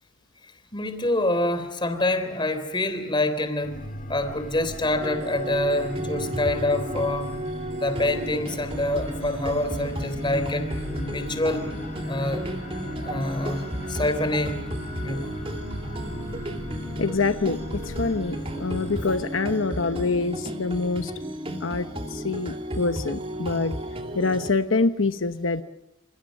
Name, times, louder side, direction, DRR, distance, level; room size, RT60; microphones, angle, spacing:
voice 1, 0.7-3.8 4.1-7.3 7.7-10.7 11.1-11.6 12.1-12.4 13.0-14.6 15.0-15.3, left 1 dB, 25° left, 9 dB, 3.6 m, -26 dB
sound 1, 3.6-19.3, left 1 dB, 40° left, 4.6 m, -37 dB
sound 2, 5.0-24.5, right 1 dB, 30° right, 2.4 m, -33 dB
voice 2, 17.0-21.1 21.6-23.8 24.1-25.6, left 3 dB, 80° left, 9 dB, 1.0 m, -25 dB
28.5 x 28.0 x 6.5 m, 0.84 s
head